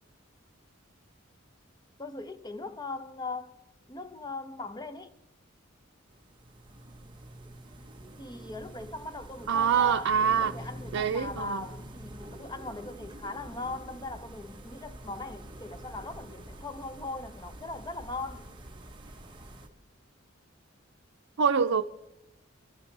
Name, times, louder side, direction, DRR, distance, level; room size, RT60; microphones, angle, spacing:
voice 1, 2.0-3.6 3.9-5.1 8.2-10.1 10.4-18.5, left 3 dB, 20° left, 0.7 m, -39 dB
sound 1, 6.1-19.7, right 1 dB, 25° right, 1.2 m, -46 dB
voice 2, 9.5-10.6 10.9-11.6 21.4-21.8, right 7 dB, 75° right, 0.5 m, -25 dB
24.5 x 12.0 x 3.3 m
head